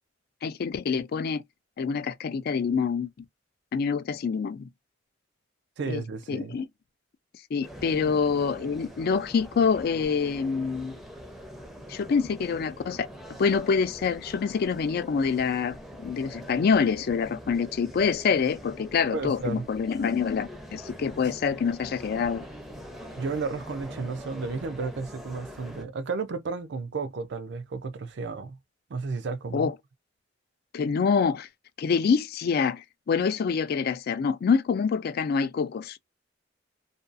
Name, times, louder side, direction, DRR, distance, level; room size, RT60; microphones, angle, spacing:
voice 1, 0.4-1.4 1.8-3.1 3.7-4.7 5.9-6.0 6.3-6.7 7.5-10.9 11.9-13.1 13.4-15.8 16.0-22.4 29.5-29.7 30.7-31.5 31.8-36.0, left 5 dB, 55° left, 0.3 m, -26 dB
voice 2, 5.8-6.6 8.0-8.1 19.1-19.7 23.2-28.6 28.9-29.7, right 4 dB, 65° right, 0.4 m, -33 dB
sound 1, 7.6-25.8, equal, ahead, 0.5 m, -44 dB
2.5 x 2.3 x 2.4 m
head